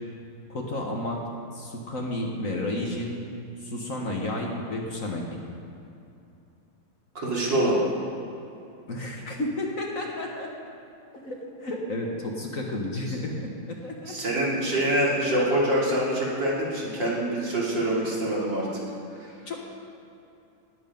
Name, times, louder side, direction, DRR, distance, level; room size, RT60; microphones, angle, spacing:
voice 1, 0.5-1.2 1.5-3.2 3.6-5.2 8.9-10.5 11.1-14.1 19.5-19.6, left 1 dB, 45° left, 0 dB, 1.6 m, -31 dB
voice 2, 7.1-7.8 13.0-13.1 14.1-18.7 19.2-19.3, right 1 dB, 65° right, -5 dB, 3.4 m, -25 dB
19.0 x 8.2 x 5.3 m, 2.8 s
omnidirectional pair, 2.1 m